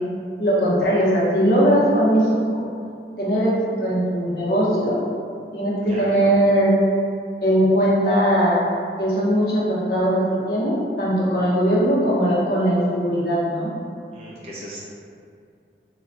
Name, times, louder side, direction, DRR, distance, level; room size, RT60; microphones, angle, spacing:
voice 1, 0.4-2.6 3.2-3.5 3.8-5.0 5.5-6.8 7.4-8.5 9.0-13.7, equal, 60° left, -7 dB, 0.7 m, -19 dB
voice 2, 5.9-6.5 14.1-14.8, equal, 35° right, -7 dB, 0.6 m, -36 dB
3.2 x 2.1 x 2.4 m, 2.3 s
head